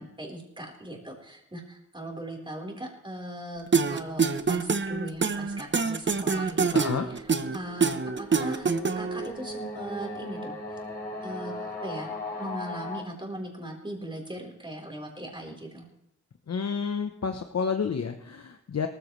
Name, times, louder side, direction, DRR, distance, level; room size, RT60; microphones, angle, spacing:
voice 1, 0.0-6.8 7.1-7.9 8.2-8.7 9.0-10.8 11.2-15.9, right 1 dB, 15° right, 0 dB, 4.0 m, -39 dB
sound 1, 3.7-9.3, right 5 dB, 40° right, 0.8 m, -25 dB
sound 2, 6.5-13.0, left 1 dB, 30° left, 4.9 m, -38 dB
voice 2, 6.7-7.1 16.5-18.9, left 6 dB, 60° left, 6 dB, 0.9 m, -30 dB
19.0 x 14.0 x 3.2 m, 0.82 s
cardioid pair, 70°, 29 cm